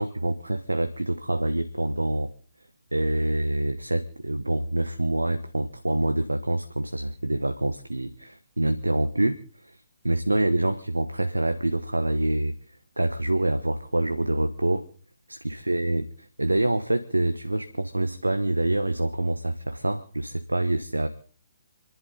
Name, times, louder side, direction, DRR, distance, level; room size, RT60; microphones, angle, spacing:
voice 1, 0.0-2.3 2.9-9.8 10.0-12.5 13.0-14.8 15.3-16.1 16.4-21.1, right 1 dB, 90° right, 8 dB, 1.2 m, -26 dB
29.5 x 11.0 x 4.0 m, 0.39 s
figure-of-eight pair, 135°, 0 cm